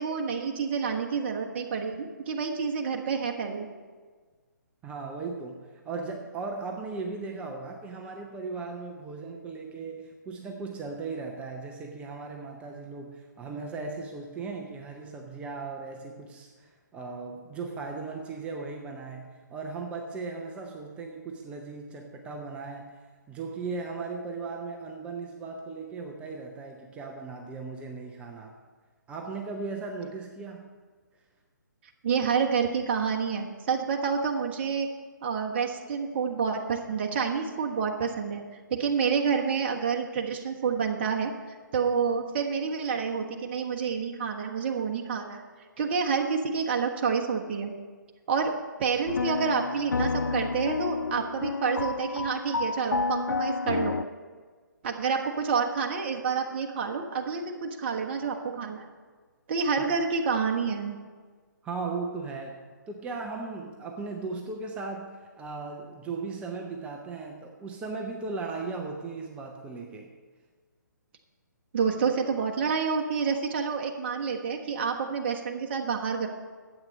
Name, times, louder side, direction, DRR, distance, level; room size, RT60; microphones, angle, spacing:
voice 1, 0.0-3.7 32.0-34.9 35.2-38.4 38.7-41.3 41.7-45.4 45.8-47.7 48.3-48.5 48.8-54.0 54.8-58.8 59.5-61.0 71.7-76.3, right 5 dB, 35° right, 2 dB, 1.2 m, -28 dB
voice 2, 4.8-23.0 23.3-28.6 29.1-30.7 59.8-60.0 61.6-70.2, right 4 dB, 10° right, 1 dB, 0.6 m, -37 dB
sound 1, 49.1-54.0, left 4 dB, 75° left, 0.4 m, -30 dB
11.5 x 8.4 x 5.3 m, 1.5 s
figure-of-eight pair, 135°, 10 cm